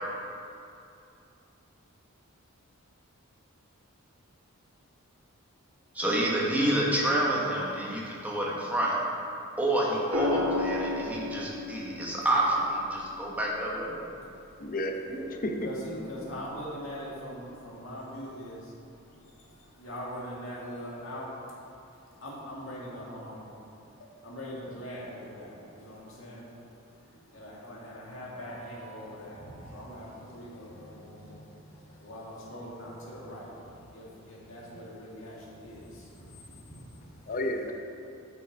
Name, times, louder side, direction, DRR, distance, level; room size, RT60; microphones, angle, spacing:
voice 1, 5.9-8.9 9.6-14.0 15.1-15.3, right 1 dB, 5° right, -4 dB, 1.3 m, -28 dB
sound 1, 10.1-14.3 16.0-16.3, left 2 dB, 75° right, 2.0 m, -34 dB
voice 2, 12.1-12.6 14.2-14.7 15.0-15.2 15.6-37.3, equal, 65° left, -5 dB, 2.2 m, -43 dB
voice 3, 14.6-15.7 37.3-37.7, left 1 dB, 40° left, 4 dB, 0.7 m, -32 dB
9.4 x 6.3 x 4.6 m, 2.7 s
head